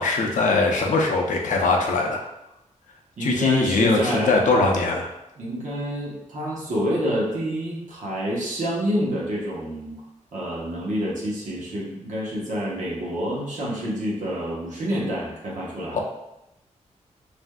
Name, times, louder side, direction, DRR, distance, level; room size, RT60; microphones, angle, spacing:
voice 1, 0.0-2.2 3.2-5.1 15.9-16.0, left 3 dB, 80° left, 0 dB, 0.5 m, -21 dB
voice 2, 3.2-4.3 5.4-9.9 10.3-16.0, equal, 75° right, -5 dB, 1.0 m, -28 dB
3.3 x 2.5 x 2.2 m, 0.88 s
wide cardioid pair, 120°, 13 cm